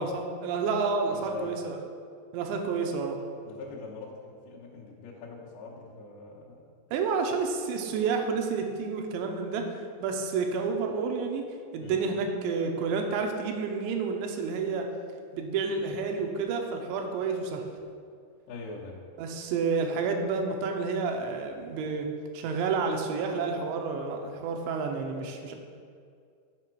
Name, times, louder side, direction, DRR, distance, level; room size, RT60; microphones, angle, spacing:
voice 1, 0.0-1.8 2.3-3.2 6.9-11.5 11.7-14.9 15.3-17.6 19.2-22.1 22.3-25.6, right 4 dB, 85° right, 3 dB, 2.9 m, -30 dB
voice 2, 1.1-1.6 3.4-6.7 11.8-12.0 18.5-19.0, left 4 dB, 70° left, -5 dB, 2.4 m, -43 dB
7.6 x 5.7 x 4.5 m, 2.2 s
omnidirectional pair, 5.2 m